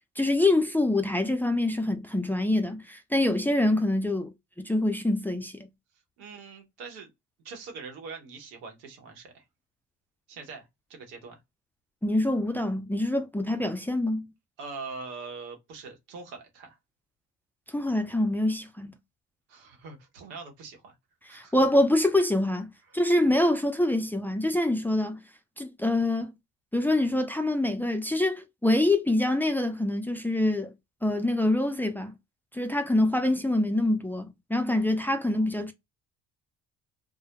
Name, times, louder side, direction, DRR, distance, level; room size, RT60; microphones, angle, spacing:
voice 1, 0.2-5.5 12.0-14.3 17.7-18.9 21.3-25.2 25.6-26.3 26.7-30.7 31.0-32.1 32.5-35.7, left 1 dB, 5° left, 0.4 m, -25 dB
voice 2, 6.2-7.1 7.4-9.4 10.3-11.4 14.6-16.8 19.5-20.9 21.3-21.5 22.9-23.0 35.2-35.5, right 4 dB, 85° right, 0.9 m, -43 dB
2.2 x 2.1 x 2.8 m
hypercardioid pair, 60°, 34 cm